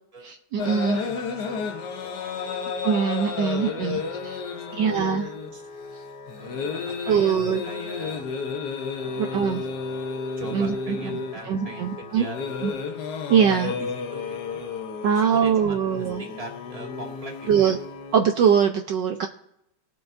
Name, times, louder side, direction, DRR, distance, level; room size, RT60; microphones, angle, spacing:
voice 1, 0.2-1.0 2.8-4.4 4.7-5.3 7.1-7.6 9.2-9.6 10.5-11.1 11.5-12.2 13.3-13.7 15.0-16.2 17.5-17.8 18.1-19.3, right 7 dB, 70° right, 6 dB, 1.1 m, -22 dB
sound 1, 0.6-18.2, left 5 dB, 60° left, 1.2 m, -32 dB
voice 2, 0.9-2.6 3.5-5.0 5.5-5.6 6.4-8.3 9.0-12.8 13.5-14.7 15.1-17.7, right 3 dB, 15° right, -1 dB, 2.1 m, -42 dB
20.5 x 7.9 x 2.6 m, 0.80 s
omnidirectional pair, 2.4 m